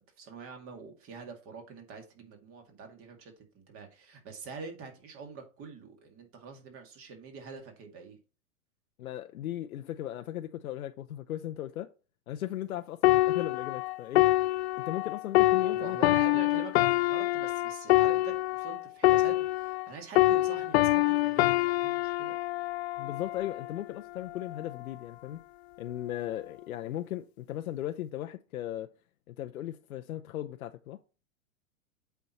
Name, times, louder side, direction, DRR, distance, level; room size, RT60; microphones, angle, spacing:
voice 1, 0.2-8.2 15.6-22.4, right 5 dB, 30° right, 2.1 m, -45 dB
voice 2, 9.0-11.9 12.3-14.3 14.8-16.3 23.0-25.4 25.8-28.9 29.3-31.0, left 12 dB, 80° left, 0.7 m, -37 dB
sound 1, 13.0-19.9 20.2-23.7 24.4-24.6, left 17 dB, 50° left, 0.4 m, -26 dB
8.2 x 4.6 x 4.2 m
hypercardioid pair, 130°, 42 cm